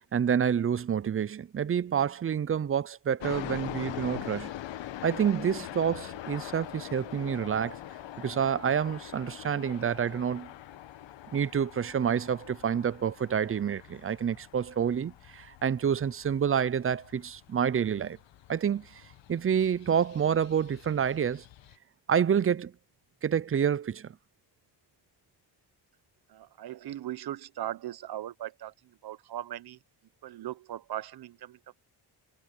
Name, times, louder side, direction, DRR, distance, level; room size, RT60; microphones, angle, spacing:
voice 1, 0.1-4.5 5.0-7.8 8.2-10.5 11.3-18.2 18.5-19.0 19.3-21.4 22.1-22.7 23.2-24.1, right 8 dB, 30° right, 0.6 m, -28 dB
sound 1, 3.2-21.8, left 12 dB, 75° left, 1.6 m, -43 dB
voice 2, 26.3-29.8 30.2-31.7, right 12 dB, 55° right, 1.0 m, -39 dB
cardioid pair, 85°, 44 cm